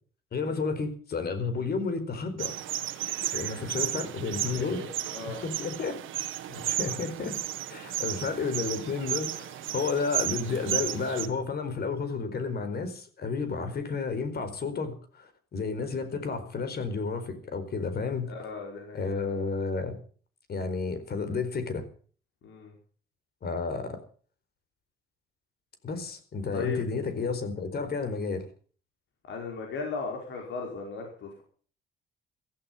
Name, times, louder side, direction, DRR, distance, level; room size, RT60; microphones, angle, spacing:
voice 1, 0.3-2.6 3.2-4.8 5.3-6.0 6.6-7.4 7.7-18.3 18.9-20.0 20.5-21.9 23.4-24.0 25.8-28.4, left 4 dB, 55° left, 10 dB, 4.4 m, -31 dB
sound 1, 2.4-11.3, right 13 dB, 85° right, 1.5 m, -33 dB
voice 2, 3.6-4.2 4.5-4.8 5.1-5.4 6.5-6.6 18.3-19.1 22.4-22.7 26.5-26.8 29.3-31.4, left 4 dB, 70° left, 1 dB, 5.4 m, -37 dB
15.5 x 15.0 x 5.7 m, 0.44 s
cardioid pair, 90°, 20 cm